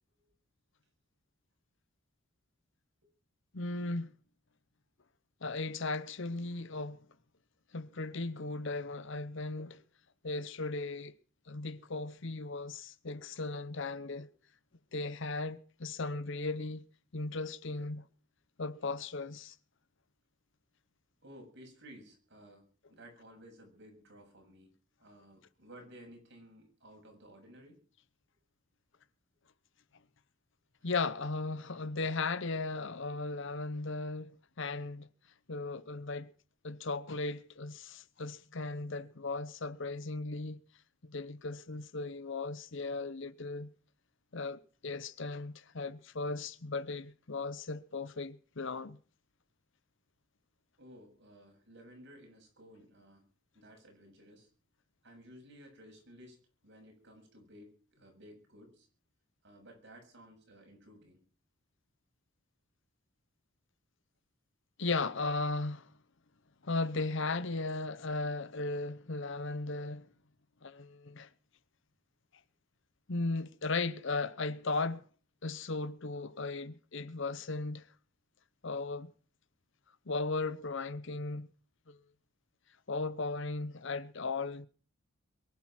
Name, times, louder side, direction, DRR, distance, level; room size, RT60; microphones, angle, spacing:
voice 1, 3.5-4.1 5.4-7.0 7.7-9.8 10.2-11.1 11.5-14.3 14.9-16.8 17.1-18.0 18.6-19.5 30.8-34.3 34.6-35.1 35.5-36.3 36.6-40.6 41.0-43.7 44.3-49.0 64.8-65.9 66.6-70.1 70.6-71.3 73.1-75.0 75.4-77.8 78.6-79.1 80.1-81.5 81.9-82.0 82.9-84.7, left 3 dB, 60° left, 0.9 m, -36 dB
voice 2, 21.2-24.7 25.0-27.8 50.8-53.2 53.5-54.5 55.0-56.4 56.6-58.9 59.4-61.2, equal, 55° right, 7.5 m, -55 dB
23.0 x 10.5 x 5.9 m
head